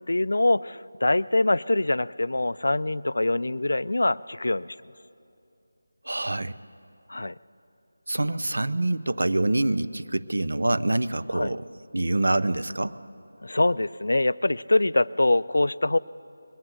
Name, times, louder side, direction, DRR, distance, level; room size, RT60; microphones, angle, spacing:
voice 1, 0.1-4.8 7.1-7.3 11.3-11.5 13.4-16.0, left 2 dB, 75° left, 18 dB, 0.3 m, -24 dB
voice 2, 6.0-6.5 8.1-11.6 11.9-12.9, right 2 dB, 70° right, 13 dB, 0.5 m, -25 dB
21.0 x 7.4 x 8.2 m, 2.6 s
figure-of-eight pair, 180°, 0 cm